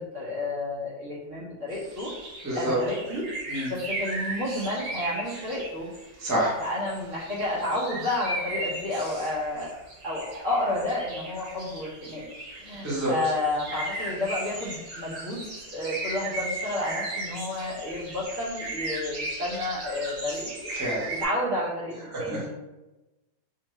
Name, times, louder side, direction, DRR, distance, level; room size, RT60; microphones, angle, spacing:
voice 1, 0.0-2.1 2.5-3.2 3.7-5.9 6.6-9.7 10.0-12.3 12.6-20.7 21.1-22.5, left 1 dB, 45° right, -7 dB, 1.4 m, -31 dB
sound 1, 1.7-6.1 6.6-21.2, right 2 dB, 90° right, 1.9 m, -37 dB
voice 2, 2.4-2.8 3.5-3.7 6.2-6.6 12.8-13.1 20.7-21.1 22.1-22.5, right 1 dB, 10° right, -7 dB, 0.9 m, -28 dB
4.6 x 2.6 x 3.1 m, 1.1 s
omnidirectional pair, 1.9 m